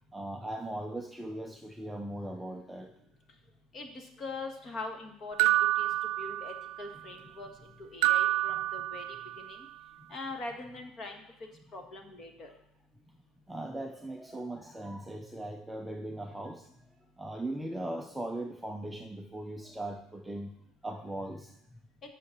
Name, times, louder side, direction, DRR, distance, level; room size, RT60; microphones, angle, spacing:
voice 1, 0.1-2.9 13.5-16.7 17.2-20.5 20.8-21.5, right 1 dB, 5° right, 3 dB, 0.5 m, -39 dB
voice 2, 3.7-5.9 6.2-9.6 10.1-11.2 11.7-12.5, left 3 dB, 30° left, 4 dB, 1.3 m, -42 dB
sound 1, 5.4-6.9 8.0-9.5, right 16 dB, 75° right, 0.3 m, -28 dB
9.4 x 5.6 x 5.8 m, 0.75 s
cardioid pair, 165°, 0 cm